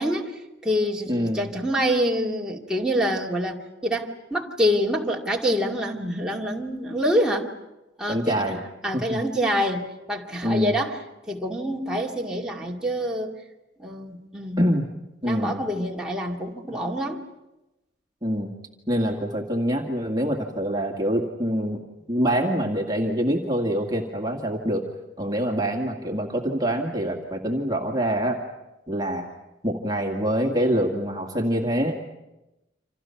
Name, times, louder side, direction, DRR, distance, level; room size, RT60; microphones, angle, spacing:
voice 1, 0.0-7.5 8.0-8.6 8.8-11.0 11.3-13.3 13.8-14.7 15.2-17.2, equal, 5° right, -3 dB, 2.4 m, -26 dB
voice 2, 1.1-1.5 8.1-8.6 8.9-9.2 10.4-10.8 14.6-14.9 15.2-15.6 18.2-18.5 18.9-21.8 22.1-24.9 25.2-28.4 28.9-29.3 29.6-32.0, equal, 20° right, 1 dB, 2.0 m, -25 dB
29.0 x 27.0 x 5.8 m, 0.97 s
head